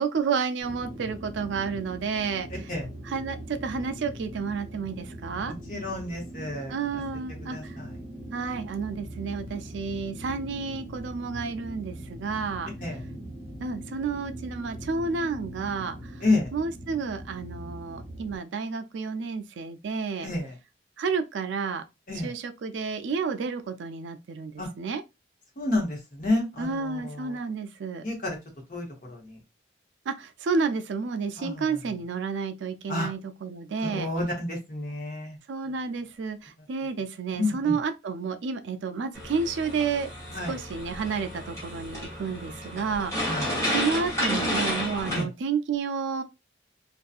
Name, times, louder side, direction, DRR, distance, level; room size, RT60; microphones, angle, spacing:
voice 1, 0.0-2.7 3.0-5.5 6.7-7.8 8.3-12.7 13.6-16.2 16.5-20.3 21.0-21.8 22.2-25.0 26.6-28.0 30.1-34.1 35.5-40.1 40.5-43.4 43.7-46.2, right 5 dB, 75° right, 0.4 m, -31 dB
sound 1, 0.6-18.4, right 1 dB, 15° right, 1.1 m, -41 dB
voice 2, 5.7-6.7 7.5-7.9 12.8-13.0 16.2-16.5 20.2-20.5 22.1-22.3 24.6-24.7 25.6-27.4 28.0-28.4 28.7-29.4 31.4-31.6 32.9-33.1 33.8-35.4 37.4-37.7 40.3-40.6 43.3-43.5 45.1-45.3, left 2 dB, 45° left, 1.0 m, -30 dB
sound 2, 39.1-45.2, equal, 15° left, 1.1 m, -31 dB
2.6 x 2.3 x 2.4 m
head